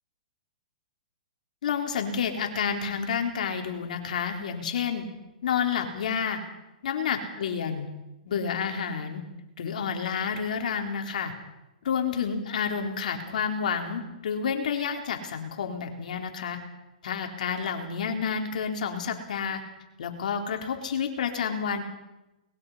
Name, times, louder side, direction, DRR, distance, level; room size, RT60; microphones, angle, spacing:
voice 1, 1.6-5.1 5.4-6.4 6.8-7.9 8.3-9.2 9.6-11.3 11.8-16.6 17.0-19.6 20.0-21.8, left 7 dB, 70° left, 4 dB, 3.9 m, -29 dB
22.5 x 21.0 x 5.7 m, 0.99 s
hypercardioid pair, 130°, 4 cm